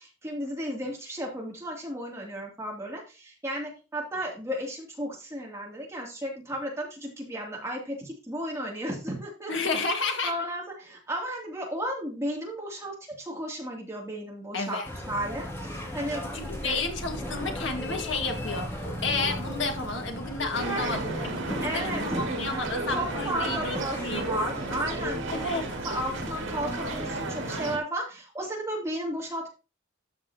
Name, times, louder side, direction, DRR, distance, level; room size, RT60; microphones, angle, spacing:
voice 1, 0.0-9.5 10.2-14.8 15.1-16.3 16.6-16.8 20.5-20.9 21.6-22.2 22.9-25.5 25.8-29.5, right 1 dB, 15° right, 2.7 m, -34 dB
voice 2, 9.5-10.3 14.5-14.9 16.3-18.7 19.0-23.8 24.0-24.2 25.3-25.8, left 3 dB, 70° left, 1.8 m, -31 dB
sound 1, 14.8-27.2, equal, 10° left, 2.3 m, -38 dB
sound 2, 20.5-27.8, right 2 dB, 85° right, 2.2 m, -33 dB
12.5 x 6.0 x 2.9 m
head